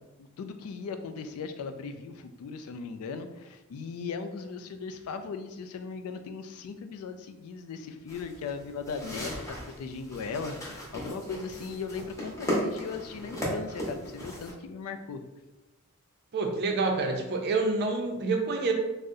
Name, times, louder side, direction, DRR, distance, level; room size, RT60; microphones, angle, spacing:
voice 1, 0.2-15.2, left 5 dB, 75° left, 8 dB, 0.3 m, -38 dB
sound 1, 8.1-14.5, equal, 15° left, 0.7 m, -36 dB
voice 2, 16.3-18.7, right 3 dB, 50° right, 3 dB, 0.5 m, -27 dB
2.6 x 2.0 x 3.6 m, 1.1 s
head